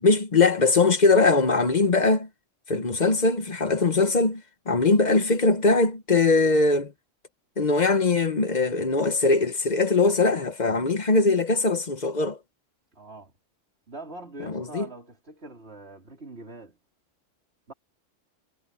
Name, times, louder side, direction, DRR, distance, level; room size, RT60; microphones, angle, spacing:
voice 1, 0.0-2.3 2.7-6.9 7.6-12.4 14.5-14.9, left 3 dB, 35° left, 1.1 m, -21 dB
voice 2, 12.9-13.3 13.9-16.8 17.7-17.8, right 2 dB, 55° right, 4.5 m, -43 dB
omnidirectional pair, 1.3 m